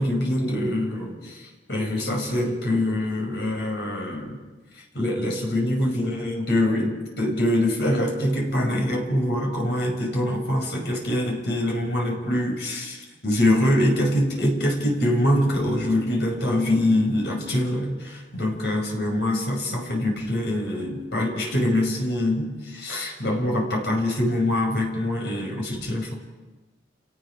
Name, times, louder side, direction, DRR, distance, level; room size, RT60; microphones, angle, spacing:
voice 1, 0.0-1.4 1.7-4.4 4.9-13.0 13.2-26.2, left 1 dB, 70° left, 1 dB, 5.7 m, -24 dB
30.0 x 18.5 x 5.1 m, 1.2 s
head